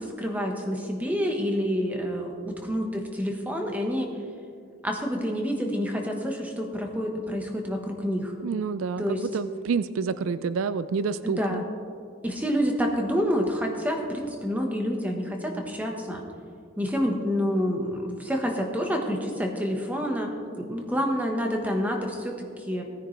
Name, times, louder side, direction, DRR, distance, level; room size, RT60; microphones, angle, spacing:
voice 1, 0.0-4.1 4.8-8.3 9.0-9.3 11.2-11.6 12.2-16.2 16.8-22.8, equal, 10° right, 1 dB, 1.2 m, -28 dB
voice 2, 8.4-11.6, right 5 dB, 75° right, 14 dB, 0.4 m, -28 dB
18.5 x 9.9 x 3.3 m, 2.3 s
head